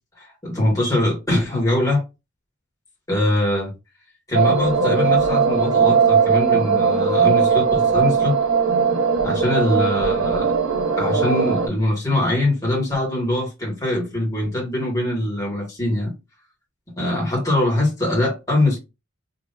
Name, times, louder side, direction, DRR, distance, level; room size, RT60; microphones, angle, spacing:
voice 1, 0.2-2.0 3.1-3.7 4.3-8.4 9.2-10.5 11.0-16.1 17.0-18.8, left 1 dB, 15° left, 1.9 m, -22 dB
sound 1, 4.3-11.7, right 5 dB, 80° right, 0.8 m, -19 dB
4.0 x 3.2 x 2.6 m
head